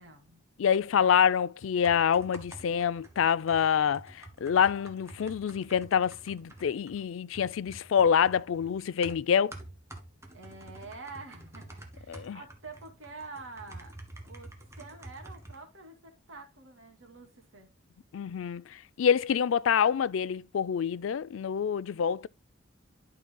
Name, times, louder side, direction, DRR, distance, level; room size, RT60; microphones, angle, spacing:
voice 1, 0.0-0.4 10.3-13.9 14.2-17.7, right 3 dB, 65° right, 2.5 m, -47 dB
voice 2, 0.6-9.5 12.1-12.4 18.1-22.3, left 7 dB, 70° left, 0.4 m, -26 dB
sound 1, 1.8-15.6, right 1 dB, 15° right, 1.6 m, -49 dB
11.5 x 5.9 x 2.2 m
head